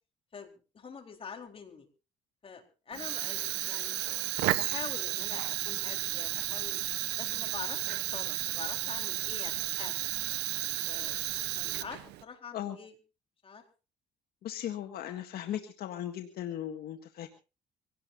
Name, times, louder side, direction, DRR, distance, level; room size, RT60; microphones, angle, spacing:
voice 1, 0.3-1.9 2.4-4.0 4.6-6.8 7.2-10.0 10.9-11.1 11.5-12.9 13.4-13.6, left 6 dB, 35° left, 4 dB, 4.1 m, -45 dB
Fire, 2.9-12.2, right 16 dB, 80° right, 0.9 m, -33 dB
voice 2, 14.4-17.3, left 11 dB, 65° left, 5 dB, 1.8 m, -37 dB
25.0 x 17.5 x 2.7 m, 0.33 s
cardioid pair, 110°, 17 cm